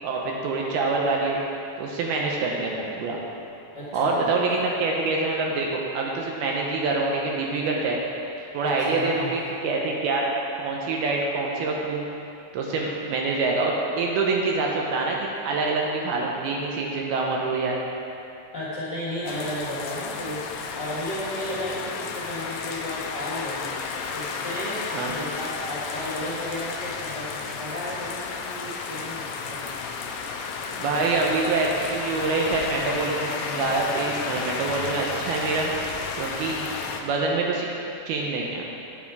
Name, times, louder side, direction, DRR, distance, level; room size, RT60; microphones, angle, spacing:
voice 1, 0.0-1.4 1.8-3.2 3.9-8.0 8.5-10.3 10.6-12.1 12.5-17.8 24.9-25.1 30.7-35.7 36.2-36.6 37.0-37.7 38.1-38.6, right 3 dB, 75° right, -1 dB, 2.6 m, -25 dB
voice 2, 2.0-2.3 3.7-4.6 8.6-9.4 18.5-23.8 24.1-29.7 36.5-36.7, left 1 dB, 40° left, -10 dB, 1.7 m, -34 dB
sound 1, 19.3-37.0, left 5 dB, 85° left, 2.0 m, -33 dB
9.5 x 8.6 x 4.8 m, 2.8 s
omnidirectional pair, 4.8 m